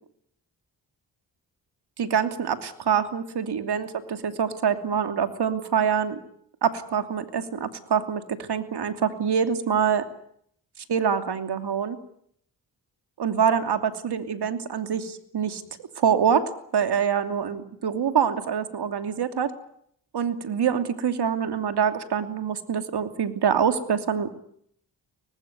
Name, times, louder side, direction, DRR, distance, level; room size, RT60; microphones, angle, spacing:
voice 1, 2.0-6.2 6.6-10.0 10.9-12.0 13.2-15.6 16.0-19.5 20.1-24.3, right 7 dB, 65° right, 8 dB, 2.9 m, -25 dB
24.5 x 19.5 x 9.5 m, 0.67 s
supercardioid pair, 50°, 43 cm